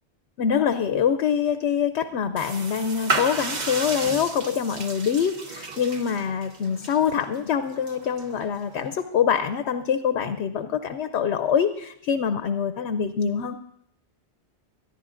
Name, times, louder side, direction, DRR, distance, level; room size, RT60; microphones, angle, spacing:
voice 1, 0.4-13.5, left 7 dB, 80° left, 8 dB, 0.9 m, -25 dB
sound 1, 2.4-9.0, right 3 dB, 45° right, 0.9 m, -33 dB
24.5 x 10.5 x 2.5 m, 0.73 s
omnidirectional pair, 1.1 m